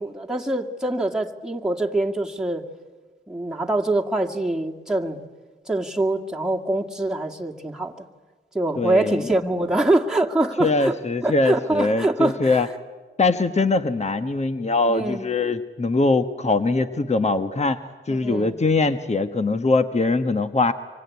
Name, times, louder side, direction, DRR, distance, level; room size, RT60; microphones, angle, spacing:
voice 1, 0.0-2.6 3.3-5.2 5.7-8.1 8.5-11.0 11.2-12.7 14.9-15.3 18.1-18.6, right 1 dB, 5° right, -1 dB, 2.2 m, -24 dB
voice 2, 8.8-9.2 10.6-12.7 13.2-17.8 18.1-20.7, left 3 dB, 30° left, 9 dB, 1.2 m, -22 dB
25.0 x 25.0 x 9.5 m, 1.4 s
cardioid pair, 75°, 21 cm